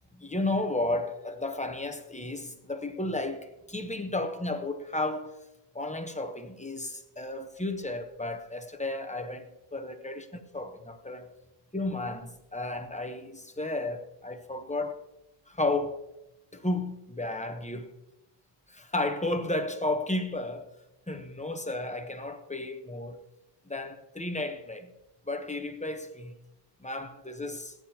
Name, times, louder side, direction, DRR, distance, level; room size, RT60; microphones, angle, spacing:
voice 1, 0.1-5.4 5.7-11.3 11.7-15.0 15.5-16.1 16.5-17.9 18.7-20.7 21.1-23.2 23.7-24.9 25.3-26.3 26.8-27.7, left 2 dB, 10° left, 0.8 m, -33 dB
19.5 x 9.5 x 2.9 m
omnidirectional pair, 1.1 m